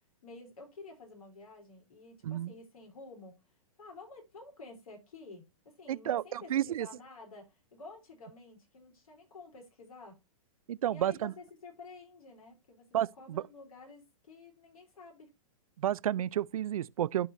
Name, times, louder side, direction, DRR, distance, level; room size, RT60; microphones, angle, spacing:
voice 1, 0.2-3.4 3.8-10.2 10.8-12.9 13.2-15.3, left 3 dB, 85° left, 3.8 m, -51 dB
voice 2, 5.9-6.9 10.7-11.3 12.9-13.4 15.8-17.3, right 11 dB, 75° right, 0.5 m, -31 dB
12.0 x 4.9 x 2.7 m
hypercardioid pair, 135°, 18 cm